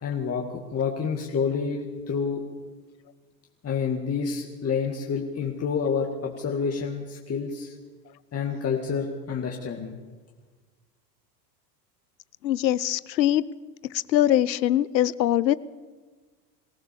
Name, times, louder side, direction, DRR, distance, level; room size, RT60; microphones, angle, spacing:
voice 1, 0.0-0.5 0.7-2.4 3.6-7.7 8.3-10.0, left 6 dB, 30° left, 0 dB, 2.2 m, -28 dB
voice 2, 12.4-13.4 13.9-15.6, left 12 dB, 85° left, 19 dB, 0.8 m, -22 dB
23.0 x 16.0 x 7.1 m, 1.4 s
hypercardioid pair, 85°, 50 cm